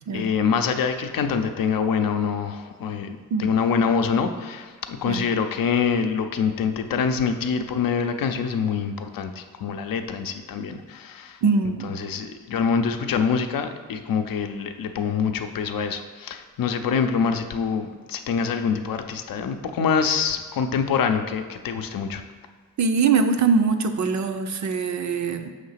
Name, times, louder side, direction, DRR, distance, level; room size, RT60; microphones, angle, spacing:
voice 1, 0.1-11.4 11.8-22.2, left 6 dB, 85° left, 7 dB, 0.5 m, -25 dB
voice 2, 11.4-11.9 22.8-25.5, right 5 dB, 55° right, 7 dB, 0.5 m, -22 dB
5.6 x 3.3 x 5.6 m, 1.5 s
wide cardioid pair, 95°, 33 cm